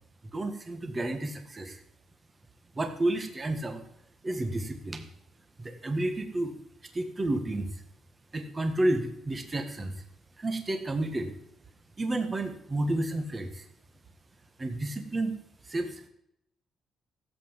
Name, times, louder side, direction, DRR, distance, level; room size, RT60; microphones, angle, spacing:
voice 1, 0.3-1.8 2.8-3.8 4.2-5.0 5.6-6.5 6.9-7.7 8.3-9.9 10.4-11.3 12.0-13.6 14.6-15.3 15.7-16.0, right 1 dB, 20° right, 7 dB, 1.7 m, -31 dB
16.0 x 8.1 x 7.4 m, 0.76 s
cardioid pair, 155°, 0 cm